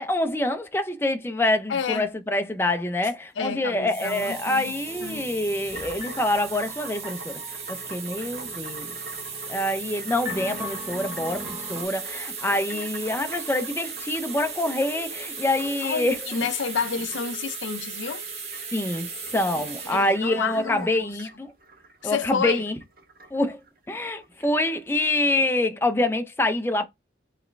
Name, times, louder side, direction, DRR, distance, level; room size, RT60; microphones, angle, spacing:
voice 1, 0.0-7.4 7.7-8.9 9.5-16.5 18.7-21.5 22.0-22.8 23.3-23.6 23.9-26.9, left 1 dB, 10° left, 0.5 m, -26 dB
voice 2, 1.7-2.1 3.4-5.3 12.5-12.9 15.8-18.2 19.9-21.1 22.0-22.6, left 6 dB, 80° left, 0.5 m, -30 dB
sound 1, 3.8-21.0, right 5 dB, 35° right, 1.4 m, -37 dB
sound 2, 4.1-11.8, left 1 dB, 15° right, 0.8 m, -42 dB
sound 3, 5.6-24.8, right 2 dB, 50° right, 1.4 m, -46 dB
4.8 x 3.1 x 3.2 m
head